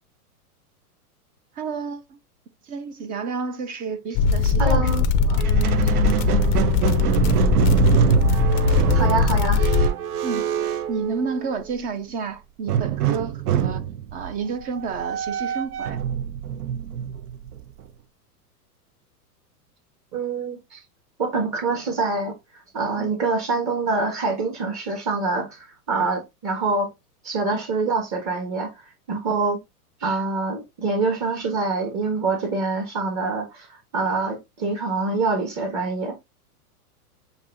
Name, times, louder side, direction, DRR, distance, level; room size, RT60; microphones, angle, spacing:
voice 1, 1.6-2.2 2.6-5.4 5.7-6.1 10.2-10.5 10.9-13.8 14.1-16.0 23.0-23.1 27.5-27.6, right 5 dB, 20° right, 0.5 m, -31 dB
sound 1, 4.1-9.9, left 5 dB, 30° left, 0.5 m, -20 dB
voice 2, 4.6-5.0 8.9-9.6 20.1-20.8 21.2-22.3 22.7-26.9 27.2-29.6 30.0-36.2, right 3 dB, 35° right, 1.7 m, -25 dB
Squeak, 5.4-11.7 12.7-17.9, right 9 dB, 70° right, 0.8 m, -25 dB
7.2 x 2.7 x 2.6 m
hypercardioid pair, 120°, 46 cm